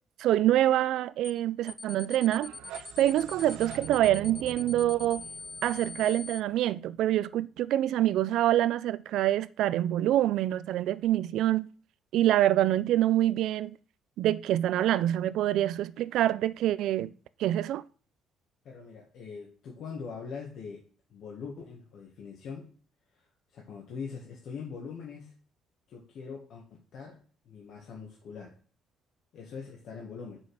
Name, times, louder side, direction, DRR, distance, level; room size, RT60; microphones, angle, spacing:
voice 1, 0.2-2.5 3.0-5.2 5.6-11.7 12.1-13.8 14.2-17.1 17.4-17.8, right 13 dB, 65° right, 0.4 m, -26 dB
sound 1, 1.2-1.4 1.7-6.4, left 3 dB, 15° left, 0.5 m, -43 dB
sound 2, 2.3-7.2, right 10 dB, 85° right, 0.9 m, -45 dB
voice 2, 18.6-20.8 21.1-22.7 23.1-25.3 25.9-26.6 26.9-28.5 29.3-30.4, left 5 dB, 55° left, 1.8 m, -42 dB
8.2 x 6.3 x 4.8 m
cardioid pair, 155°, 0 cm